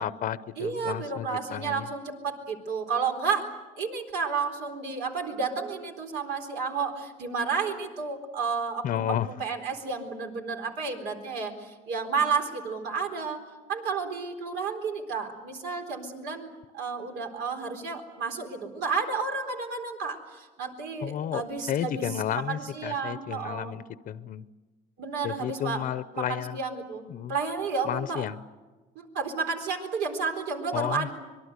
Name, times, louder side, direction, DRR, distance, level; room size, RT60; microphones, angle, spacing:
voice 1, 0.0-1.9 8.8-9.3 21.0-24.4 25.2-26.6 27.1-27.3 27.8-28.4 30.7-31.1, left 10 dB, 55° left, 15 dB, 0.7 m, -32 dB
voice 2, 0.6-3.5 3.8-13.4 13.7-22.1 22.5-23.7 25.0-25.8 26.1-28.2 29.0-31.1, right 5 dB, 90° right, 4 dB, 4.1 m, -31 dB
25.5 x 22.5 x 8.1 m, 1.2 s
cardioid pair, 110°, 17 cm